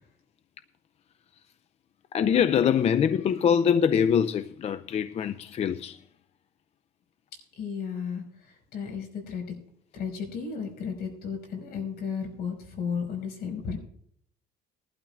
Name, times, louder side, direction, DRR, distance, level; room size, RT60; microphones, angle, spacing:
voice 1, 2.1-6.0, left 8 dB, 40° left, 0.4 m, -24 dB
voice 2, 7.6-9.6 9.9-13.8, left 6 dB, 70° left, 5.0 m, -34 dB
20.5 x 12.0 x 2.4 m
cardioid pair, 110°, 17 cm